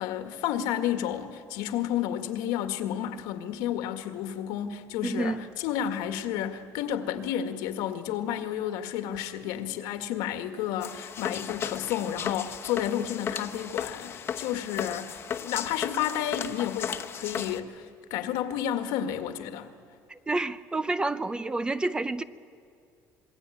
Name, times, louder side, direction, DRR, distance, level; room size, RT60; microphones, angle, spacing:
voice 1, 0.0-19.7, left 10 dB, 90° left, 1.9 m, -31 dB
voice 2, 5.0-5.4 20.1-22.2, right 2 dB, 15° right, 0.6 m, -29 dB
sound 1, 10.8-17.6, left 8 dB, 35° left, 1.1 m, -35 dB
26.5 x 22.5 x 9.4 m
cardioid pair, 160°, 7 cm